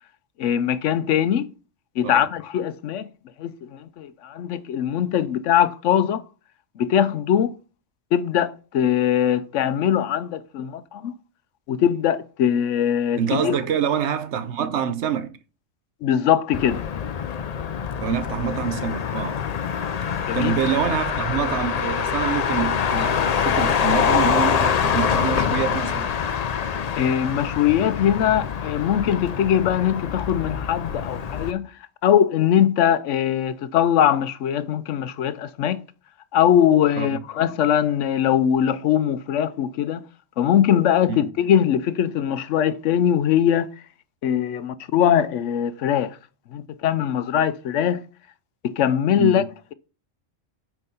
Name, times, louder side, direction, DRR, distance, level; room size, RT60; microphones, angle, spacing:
voice 1, 0.4-1.5 2.0-3.1 3.4-6.2 6.8-7.5 8.1-11.1 11.7-13.6 16.0-16.8 20.3-20.6 27.0-31.7 32.0-35.8 36.3-40.0 40.4-43.7 44.2-46.2 46.5-48.0 48.6-49.4, left 9 dB, 75° left, 0.9 m, -21 dB
voice 2, 13.2-15.3 18.0-19.4 20.3-26.1 37.0-37.2 41.1-41.3 49.2-49.4, right 8 dB, 65° right, 1.0 m, -26 dB
Motor vehicle (road), 16.5-31.5, left 7 dB, 55° left, 0.4 m, -25 dB
7.7 x 4.6 x 5.5 m
omnidirectional pair, 1.3 m